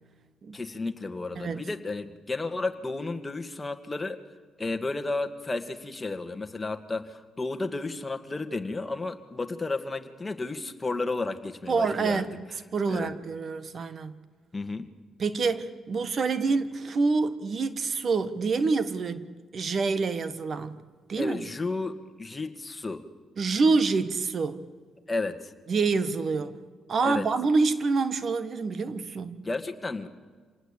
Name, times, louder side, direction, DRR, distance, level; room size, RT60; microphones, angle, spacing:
voice 1, 0.5-4.2 4.6-12.2 12.9-13.1 14.5-14.9 21.2-23.0 25.1-25.5 27.0-27.3 29.4-30.1, left 3 dB, 20° left, 2.0 m, -32 dB
voice 2, 1.4-1.7 11.7-12.4 12.7-14.2 15.2-19.3 19.5-20.8 21.1-21.4 23.4-24.7 25.7-26.5 26.9-29.4, right 4 dB, 50° right, 1.4 m, -27 dB
26.5 x 19.0 x 8.5 m
cardioid pair, 90°, 0 cm